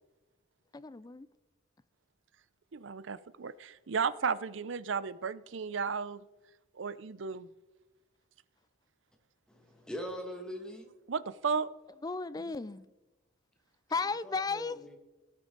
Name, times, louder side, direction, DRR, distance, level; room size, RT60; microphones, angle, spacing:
voice 1, 0.7-1.3 12.0-12.9 13.9-14.8, left 4 dB, 20° left, 0.4 m, -34 dB
voice 2, 2.7-6.2 6.8-7.5 11.1-11.7, right 5 dB, 65° right, 0.5 m, -34 dB
voice 3, 9.5-10.9 14.2-15.0, equal, 5° left, 1.8 m, -42 dB
18.5 x 8.6 x 4.0 m
head